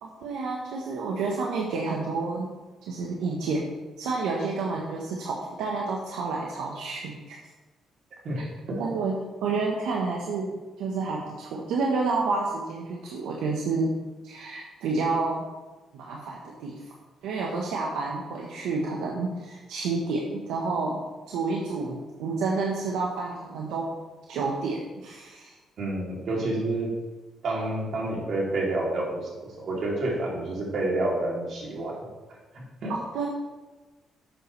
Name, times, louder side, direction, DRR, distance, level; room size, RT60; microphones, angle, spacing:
voice 1, 0.0-2.5 2.9-3.7 4.0-7.4 8.8-9.1 9.4-10.5 10.8-13.9 14.2-15.4 15.9-16.7 17.2-21.0 21.3-23.9 24.3-25.5 32.9-33.3, right 4 dB, 90° right, -2 dB, 1.2 m, -29 dB
voice 2, 8.2-8.8 25.8-27.0 27.4-32.0 32.3-32.9, right 2 dB, 60° right, -3 dB, 3.2 m, -29 dB
11.5 x 7.8 x 3.4 m, 1.2 s
cardioid pair, 90°, 0 cm